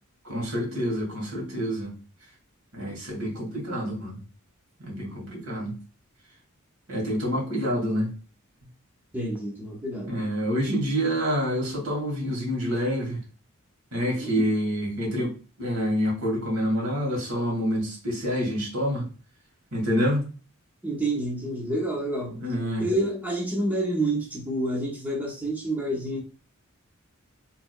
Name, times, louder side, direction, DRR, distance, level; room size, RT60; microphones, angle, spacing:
voice 1, 0.2-1.9 2.7-4.2 4.8-5.7 6.9-8.1 10.1-13.2 13.9-15.3 15.6-19.1 19.7-20.3 22.4-22.9, equal, 80° right, -2 dB, 2.1 m, -27 dB
voice 2, 9.1-10.1 14.2-14.3 20.8-22.4 22.8-26.2, right 1 dB, 10° right, -3 dB, 1.0 m, -28 dB
4.9 x 3.4 x 2.2 m, 0.36 s
head